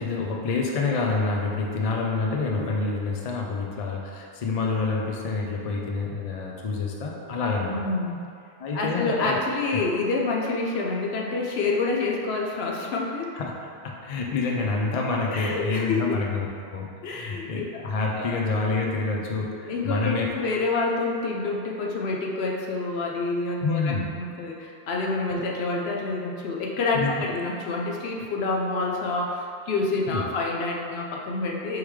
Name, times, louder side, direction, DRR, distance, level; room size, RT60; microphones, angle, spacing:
voice 1, 0.0-7.8 8.6-9.4 9.7-9.8 13.3-20.3 23.6-24.1 26.9-27.1 30.1-30.3, left 3 dB, 50° left, -1 dB, 0.4 m, -27 dB
voice 2, 7.6-8.2 8.7-13.3 15.3-16.2 17.0-17.6 18.1-18.4 19.7-31.8, left 3 dB, 70° left, -1 dB, 0.8 m, -27 dB
4.7 x 3.6 x 3.1 m, 2.5 s
omnidirectional pair, 1.1 m